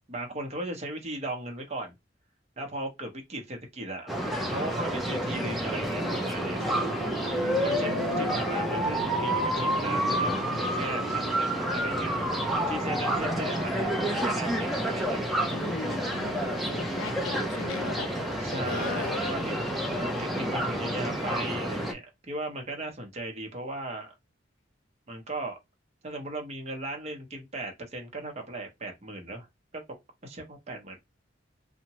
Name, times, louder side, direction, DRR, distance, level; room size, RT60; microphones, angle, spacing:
voice 1, 0.1-1.9 2.6-4.1 4.5-6.7 7.6-12.1 12.7-15.4 18.4-24.1 25.1-25.6 26.0-29.5 29.7-29.8 30.2-31.0, right 2 dB, 35° right, 0.7 m, -37 dB
sound 1, 4.1-21.9, right 1 dB, ahead, 0.5 m, -29 dB
sound 2, 6.5-21.1, right 1 dB, 25° left, 1.2 m, -42 dB
voice 2, 7.4-8.3 15.5-18.1 18.7-19.2, left 5 dB, 75° left, 0.4 m, -38 dB
2.7 x 2.1 x 2.8 m
head